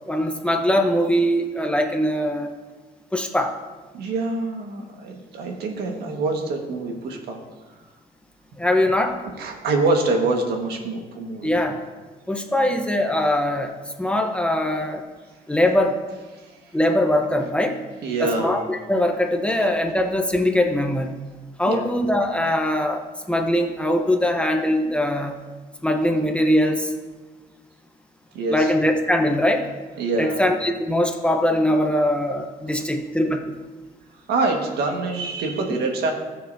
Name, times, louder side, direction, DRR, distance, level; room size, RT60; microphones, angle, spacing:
voice 1, 0.0-2.5 3.1-3.6 8.6-9.2 11.4-11.8 12.3-15.0 15.5-16.0 16.7-17.8 18.2-21.1 21.6-25.4 25.8-26.9 28.5-29.7 30.2-33.6, left 1 dB, 5° left, 3 dB, 0.9 m, -21 dB
voice 2, 3.9-7.4 9.4-11.5 16.4-16.7 18.0-18.6 21.7-21.9 28.3-28.7 30.0-30.4 32.7-32.8 34.3-36.1, right 3 dB, 70° right, 3 dB, 1.7 m, -25 dB
18.5 x 6.7 x 2.7 m, 1.3 s
cardioid pair, 110°, 17 cm